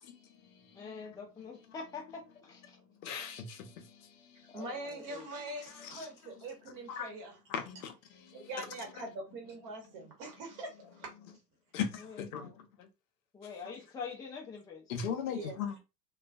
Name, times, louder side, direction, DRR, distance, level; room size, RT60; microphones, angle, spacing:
voice 1, 0.0-1.2 2.7-4.6 5.0-5.1 5.7-6.3 6.9-7.1 7.5-8.7 11.7-11.9 12.2-12.5 12.8-12.9 14.9-15.8, left 7 dB, 60° left, 0.7 m, -40 dB
voice 2, 0.7-2.8 4.5-5.3 12.1-12.5 13.3-14.9, left 5 dB, 10° left, 0.5 m, -45 dB
voice 3, 4.5-7.4 8.3-11.1 15.3-15.8, right 2 dB, 45° right, 1.0 m, -43 dB
2.3 x 2.3 x 2.3 m
figure-of-eight pair, 80°, 47 cm